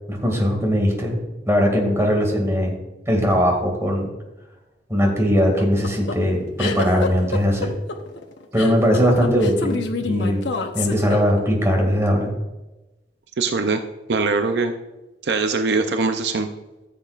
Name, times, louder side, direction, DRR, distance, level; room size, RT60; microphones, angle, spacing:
voice 1, 0.1-1.2 1.5-2.7 3.1-4.1 4.9-7.8 8.5-10.4 10.7-12.3, equal, 15° right, 1 dB, 2.2 m, -20 dB
sound 1, 5.4-11.6, left 4 dB, 90° left, 0.9 m, -27 dB
voice 2, 13.4-13.8 14.1-14.7 15.2-16.5, right 4 dB, 70° right, 7 dB, 0.6 m, -21 dB
14.5 x 7.6 x 2.5 m, 1.1 s
head